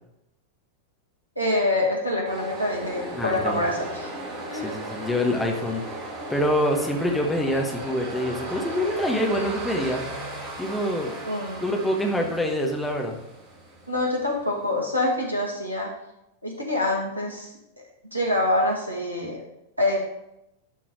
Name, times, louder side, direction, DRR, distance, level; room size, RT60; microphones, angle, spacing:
voice 1, 1.4-4.1 4.5-4.7 11.2-11.8 13.9-15.9 16.4-17.5 17.8-17.9 18.1-19.4 19.8-20.0, left 1 dB, 90° left, -2 dB, 1.9 m, -26 dB
sound 1, 2.2-15.2, right 1 dB, 35° right, 3.3 m, -37 dB
voice 2, 3.1-3.6 4.6-5.8 6.3-10.0 10.6-11.1 11.6-13.2, left 1 dB, 5° left, 1 dB, 1.4 m, -25 dB
11.5 x 3.9 x 4.7 m, 0.83 s
figure-of-eight pair, 90°, 0 cm